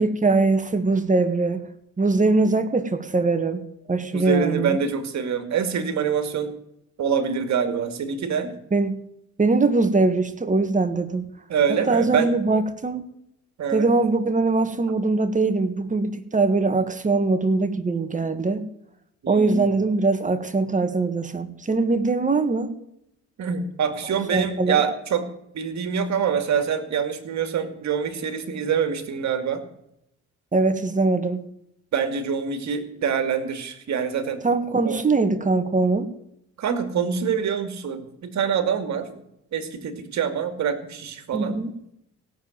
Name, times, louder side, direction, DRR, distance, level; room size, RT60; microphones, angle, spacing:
voice 1, 0.0-1.7 2.0-3.6 3.9-4.8 8.7-8.9 9.4-11.3 11.7-13.0 13.7-18.6 19.3-22.7 24.3-24.8 30.5-31.4 34.4-36.1 41.3-41.7, right 3 dB, 25° right, 9 dB, 1.8 m, -22 dB
voice 2, 4.1-6.5 7.0-8.5 11.5-12.3 13.6-13.9 19.2-19.8 23.4-25.3 25.5-29.6 31.9-34.4 34.8-35.0 36.6-39.2 39.5-41.6, right 7 dB, 65° right, 9 dB, 2.3 m, -25 dB
17.0 x 7.2 x 9.2 m, 0.78 s
cardioid pair, 90°, 30 cm